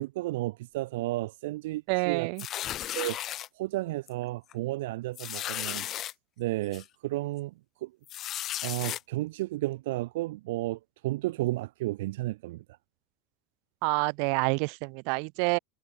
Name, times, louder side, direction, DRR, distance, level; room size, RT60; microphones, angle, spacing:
voice 1, 0.0-2.3 2.9-3.2 3.6-5.9 6.4-7.5 7.8-7.9 8.6-12.6, right 18 dB, 80° right, 0.6 m, -32 dB
voice 2, 1.9-2.4 13.8-15.6, right 40 dB or more, 55° right, 1.6 m, -28 dB
sound 1, 2.4-3.5 4.1-4.2 4.5-4.6 5.2-6.1 6.7-6.8 8.1-9.0, left 12 dB, 30° left, 0.4 m, -35 dB
supercardioid pair, 170°, 0 cm